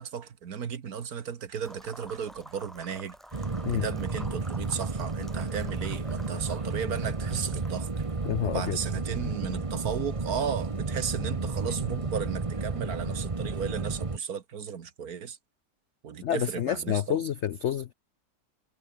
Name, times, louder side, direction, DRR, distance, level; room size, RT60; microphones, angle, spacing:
voice 1, 0.0-3.5 3.8-7.9 8.4-15.4 16.0-17.2, right 7 dB, 60° right, 1.8 m, -35 dB
sound 1, 1.6-11.4, equal, ahead, 5.4 m, -51 dB
sound 2, 3.3-14.2, right 3 dB, 20° right, 1.1 m, -32 dB
voice 2, 8.2-8.8 16.2-17.9, left 10 dB, 70° left, 0.6 m, -28 dB
omnidirectional pair, 1.9 m